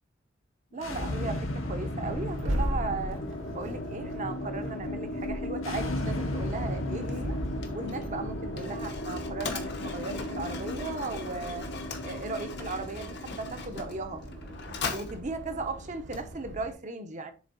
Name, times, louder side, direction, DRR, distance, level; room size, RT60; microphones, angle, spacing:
sound 1, 0.7-15.7, left 1 dB, 80° left, 1.3 m, -36 dB
voice 1, 0.7-3.2 3.5-7.4 7.7-11.7 12.0-14.2 14.9-17.3, right 3 dB, 35° right, 0.7 m, -36 dB
Accelerating revving vroom, 1.0-16.7, equal, 70° right, 1.1 m, -39 dB
Mechanisms, 7.0-16.7, left 4 dB, 55° left, 0.9 m, -41 dB
7.2 x 3.5 x 3.9 m
head